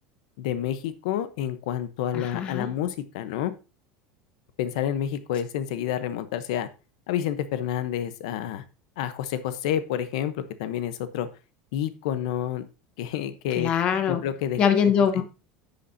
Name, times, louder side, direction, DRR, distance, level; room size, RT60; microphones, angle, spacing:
voice 1, 0.4-3.5 4.6-6.7 7.1-8.6 9.0-11.3 11.7-12.6 13.0-13.7 14.1-14.6 15.2-15.3, left 10 dB, 65° left, 0.9 m, -29 dB
voice 2, 2.1-2.7 13.6-14.2 14.6-15.2, left 7 dB, 25° left, 1.0 m, -23 dB
10.0 x 8.3 x 2.7 m
cardioid pair, 180°, 4 cm